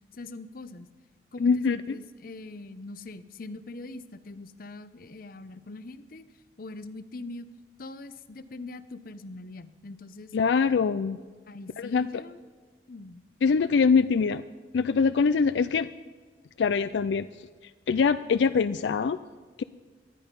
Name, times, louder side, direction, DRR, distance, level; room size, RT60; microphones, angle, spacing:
voice 1, 0.1-0.9 1.3-6.2 6.6-7.5 7.8-10.3 11.5-12.4 12.9-13.2, left 2 dB, 55° left, 13 dB, 0.7 m, -42 dB
voice 2, 1.4-1.8 10.3-11.2 11.8-12.1 13.4-14.4 14.7-15.9 16.6-17.3 17.9-19.2 19.6-19.7, left 5 dB, 80° left, 13 dB, 0.4 m, -23 dB
18.5 x 12.0 x 5.3 m, 1.4 s
head